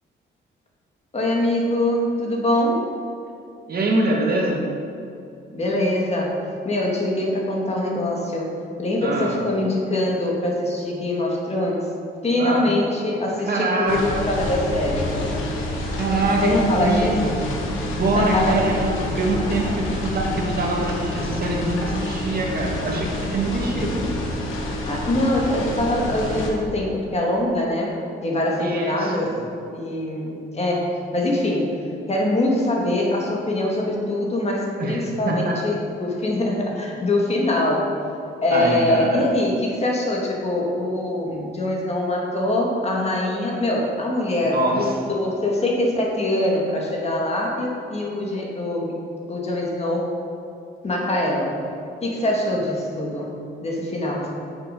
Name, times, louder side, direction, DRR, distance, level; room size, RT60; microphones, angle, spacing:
voice 1, 1.1-2.9 5.5-8.5 8.8-11.9 12.2-15.1 16.4-17.5 18.1-18.6 19.4-19.7 24.8-27.9 28.2-29.3 29.7-31.7 32.1-37.8 38.4-49.0 49.3-50.1 50.8-51.5 52.0-53.3 53.6-54.3, left 1 dB, 30° left, -2 dB, 2.2 m, -23 dB
voice 2, 3.7-4.7 9.0-9.4 12.4-12.7 13.5-14.2 16.0-17.5 17.8-24.1 28.6-29.3 34.8-35.6 38.5-39.2 44.4-45.1, right 2 dB, 50° right, -1 dB, 2.0 m, -24 dB
sound 1, 13.9-26.5, left 1 dB, 85° left, 1.8 m, -28 dB
8.4 x 7.0 x 5.4 m, 2.6 s
cardioid pair, 90°, 20 cm